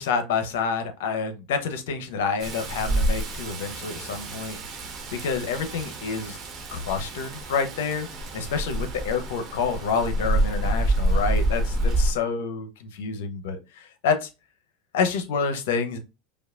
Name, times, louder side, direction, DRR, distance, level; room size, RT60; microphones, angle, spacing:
voice 1, 0.0-4.6 5.1-6.4 6.7-8.1 8.3-14.3 14.9-16.0, left 5 dB, 80° left, 8 dB, 0.8 m, -28 dB
Rain, 2.4-12.1, right 1 dB, 45° right, 1.2 m, -27 dB
5.1 x 2.4 x 2.5 m, 0.26 s
hypercardioid pair, 100°, 0 cm